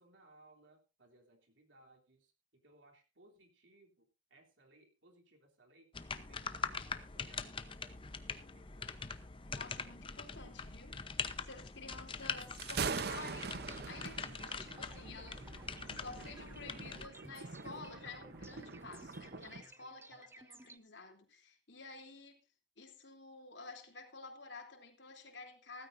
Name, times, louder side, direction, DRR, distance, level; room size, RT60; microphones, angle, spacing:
voice 1, 0.0-9.1, right 2 dB, 75° right, 3.2 m, -65 dB
sound 1, 5.9-17.1, left 5 dB, 25° left, 0.8 m, -43 dB
voice 2, 9.5-11.0 11.4-15.4 15.9-22.4 22.8-25.9, left 3 dB, 65° left, 3.3 m, -51 dB
Thunder, 12.4-19.6, right 5 dB, 55° right, 0.7 m, -43 dB
sound 2, 12.9-20.8, right 2 dB, 15° right, 0.6 m, -58 dB
16.5 x 14.5 x 2.6 m
head